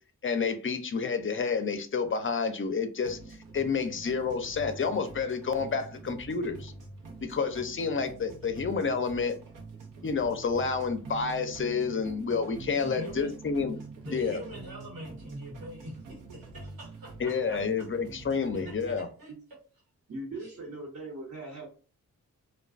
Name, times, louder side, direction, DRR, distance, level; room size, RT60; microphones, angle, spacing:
voice 1, 0.2-6.7 7.2-9.4 10.0-13.8 14.1-14.4 17.2-19.1, left 5 dB, 35° left, 8 dB, 0.5 m, -29 dB
sound 1, 3.0-19.0, right 3 dB, 65° right, 0.8 m, -45 dB
voice 2, 12.8-13.3 14.0-17.6 18.5-19.3 20.4-20.6, equal, 85° right, -4 dB, 1.1 m, -43 dB
voice 3, 20.1-21.7, right 2 dB, 45° right, -4 dB, 1.0 m, -39 dB
2.3 x 2.2 x 2.4 m, 0.38 s
supercardioid pair, 40°, 35 cm